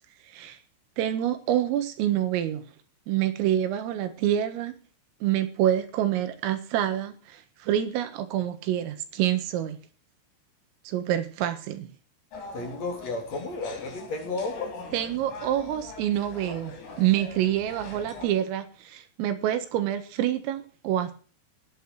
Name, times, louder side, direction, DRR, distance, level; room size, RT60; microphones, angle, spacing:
voice 1, 0.3-0.6 1.0-2.7 3.1-4.8 5.2-9.8 10.9-11.9 14.9-21.1, right 11 dB, 80° right, 10 dB, 4.1 m, -27 dB
sound 1, 12.3-18.3, left 3 dB, 70° left, 6.4 m, -43 dB
voice 2, 12.5-14.8, left 3 dB, 35° left, 4 dB, 3.9 m, -32 dB
17.5 x 9.7 x 6.2 m, 0.39 s
omnidirectional pair, 5.9 m